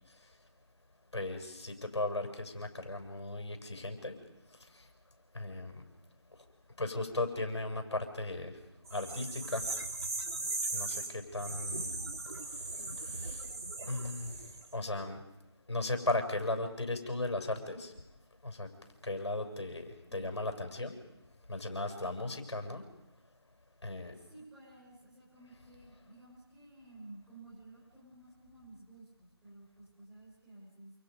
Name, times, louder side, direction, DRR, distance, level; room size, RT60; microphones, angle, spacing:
voice 1, 1.1-4.2 5.3-5.8 6.8-8.6 8.9-9.7 10.7-11.9 13.0-13.4 13.9-14.4 14.7-15.2 15.7-17.9 18.4-18.7 19.0-21.0 21.5-22.9 23.8-24.1, left 2 dB, 80° left, 5 dB, 7.4 m, -36 dB
sound 1, 8.9-14.7, right 2 dB, 65° right, 3.6 m, -38 dB
voice 2, 24.1-30.9, right 2 dB, 5° right, -8 dB, 6.2 m, -54 dB
29.5 x 29.0 x 5.5 m, 0.91 s
figure-of-eight pair, 170°, 14 cm